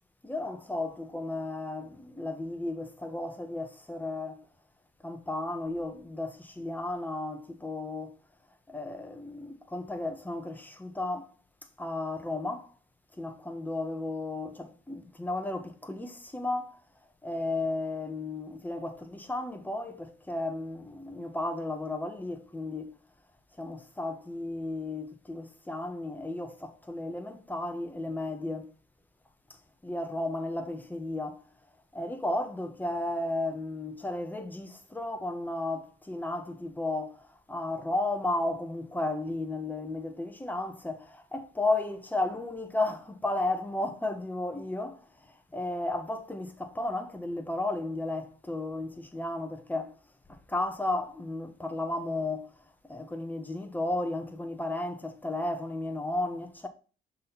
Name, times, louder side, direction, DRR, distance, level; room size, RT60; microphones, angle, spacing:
voice 1, 0.2-4.4 5.0-8.1 8.7-11.3 11.8-12.7 13.2-16.8 17.2-23.0 23.6-28.7 29.8-31.4 31.9-37.2 37.5-45.0 45.5-49.9 50.5-52.5 52.9-56.7, left 2 dB, 10° left, 1.2 m, -34 dB
6.3 x 4.3 x 4.1 m
cardioid pair, 90°, 20 cm